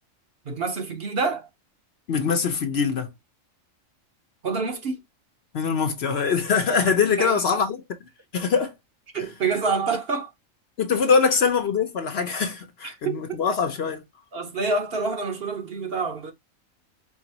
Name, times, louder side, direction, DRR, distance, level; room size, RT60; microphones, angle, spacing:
voice 1, 0.5-1.5 4.4-5.0 7.2-7.6 9.1-10.3 12.8-13.2 14.3-16.3, right 4 dB, 50° right, 0.9 m, -27 dB
voice 2, 2.1-3.1 5.5-7.8 8.3-8.7 9.2-9.3 10.8-14.0, left 5 dB, 55° left, 0.9 m, -23 dB
4.7 x 2.5 x 2.8 m
omnidirectional pair, 1.4 m